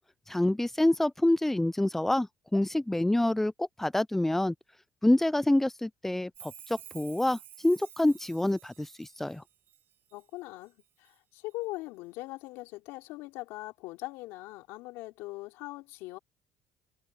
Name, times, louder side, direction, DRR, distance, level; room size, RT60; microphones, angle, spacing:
voice 1, 0.3-4.5 5.0-9.4, left 1 dB, 5° left, 0.4 m, -27 dB
Chime, 6.3-10.2 10.6-11.2 11.5-11.6, right 11 dB, 60° right, 3.2 m, -52 dB
voice 2, 10.1-10.7 11.0-16.2, left 20 dB, 80° left, 3.9 m, -41 dB
supercardioid pair, 70°, 4 cm